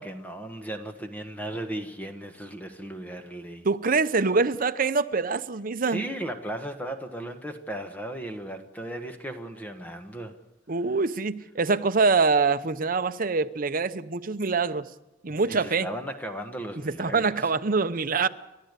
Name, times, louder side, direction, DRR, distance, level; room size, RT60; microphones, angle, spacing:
voice 1, 0.0-3.7 5.9-10.4 15.5-17.5, right 1 dB, 10° left, 6 dB, 1.3 m, -36 dB
voice 2, 3.6-6.0 10.7-14.9 15.2-15.9 16.8-18.3, right 4 dB, 45° right, 11 dB, 0.8 m, -24 dB
30.0 x 12.5 x 8.2 m, 1.1 s
head